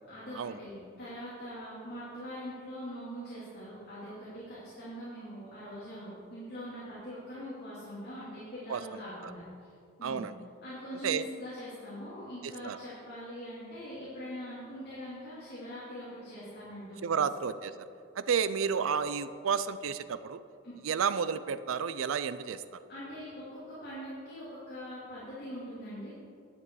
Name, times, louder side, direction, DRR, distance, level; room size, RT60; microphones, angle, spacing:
voice 1, 0.1-9.7 10.0-10.2 10.6-17.2 20.6-20.7 22.9-26.1, equal, 45° left, -10 dB, 2.8 m, -43 dB
voice 2, 10.0-10.3 11.0-11.2 12.4-12.8 17.0-17.9 18.2-20.4 20.8-22.6, right 6 dB, 80° right, 13 dB, 0.4 m, -31 dB
11.0 x 8.3 x 4.7 m, 2.4 s
head